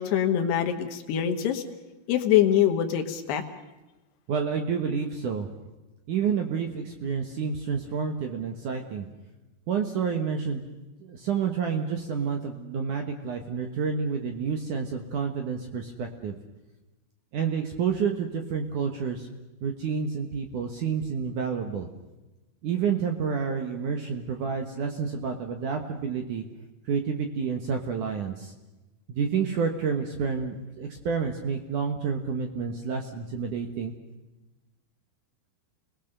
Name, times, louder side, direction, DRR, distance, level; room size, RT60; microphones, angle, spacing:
voice 1, 0.0-1.6 2.1-3.4, left 10 dB, 70° left, 5 dB, 3.3 m, -24 dB
voice 2, 4.3-5.5 6.1-9.1 9.7-10.6 11.0-16.3 17.3-19.3 19.6-21.9 22.6-26.4 26.9-28.5 29.1-33.9, right 6 dB, 60° right, 5 dB, 2.2 m, -29 dB
29.5 x 19.5 x 6.7 m, 1.0 s
omnidirectional pair, 5.1 m